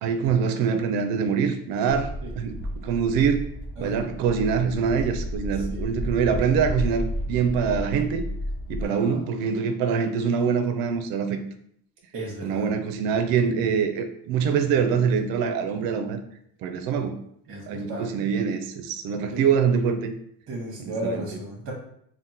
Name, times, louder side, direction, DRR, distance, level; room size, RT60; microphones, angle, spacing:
voice 1, 0.0-3.4 3.8-8.2 8.7-11.4 12.4-16.2 16.6-17.2 17.7-20.1 20.8-21.2, right 6 dB, 60° right, 8 dB, 0.5 m, -24 dB
sound 1, 1.9-8.9, equal, 55° left, 0.7 m, -32 dB
voice 2, 8.8-9.2 12.1-12.7 17.5-18.1 19.3-19.5 20.5-21.7, right 1 dB, 30° right, -2 dB, 1.0 m, -34 dB
3.5 x 2.1 x 2.7 m, 0.68 s
cardioid pair, 140°, 41 cm